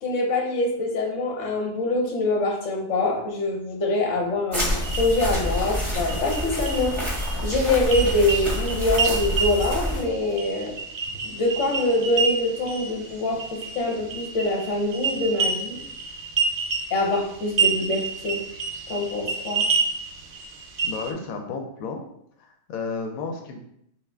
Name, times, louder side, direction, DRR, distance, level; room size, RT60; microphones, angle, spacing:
voice 1, 0.0-6.9 7.4-10.7 11.2-15.8 16.9-18.4 18.9-19.6, left 2 dB, 65° left, 1 dB, 1.2 m, -24 dB
sound 1, 4.5-10.0, equal, 25° right, 1.0 m, -27 dB
sound 2, 4.8-21.1, right 5 dB, 90° right, 0.3 m, -29 dB
voice 2, 20.8-22.0 22.4-23.6, left 4 dB, 90° left, 3 dB, 1.0 m, -32 dB
5.6 x 2.5 x 3.3 m, 0.74 s
omnidirectional pair, 1.4 m